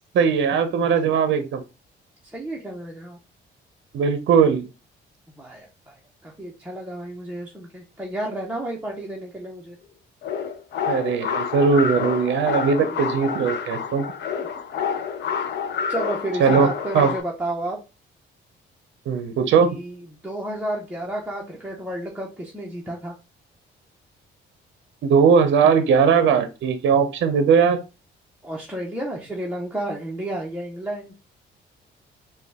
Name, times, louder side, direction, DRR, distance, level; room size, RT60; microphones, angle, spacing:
voice 1, 0.1-1.6 3.9-4.7 10.9-14.0 16.4-17.1 19.1-19.8 25.0-27.8, right 6 dB, 70° right, 9 dB, 0.6 m, -19 dB
voice 2, 2.2-3.2 5.4-9.8 14.4-14.5 15.9-17.8 19.7-23.1 28.4-31.1, right 1 dB, 5° right, -3 dB, 0.8 m, -31 dB
sound 1, 10.2-17.2, left 7 dB, 60° left, 0.6 m, -28 dB
3.7 x 2.3 x 3.4 m, 0.29 s
cardioid pair, 90°, 20 cm